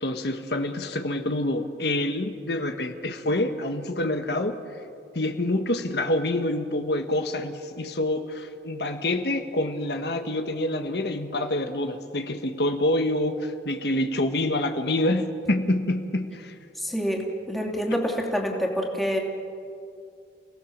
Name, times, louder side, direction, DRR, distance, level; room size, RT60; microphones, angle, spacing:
voice 1, 0.0-4.6 5.1-16.5, left 1 dB, 70° left, 6 dB, 1.4 m, -27 dB
voice 2, 16.8-19.2, equal, ahead, -1 dB, 2.8 m, -27 dB
29.5 x 18.0 x 7.3 m, 2.4 s
head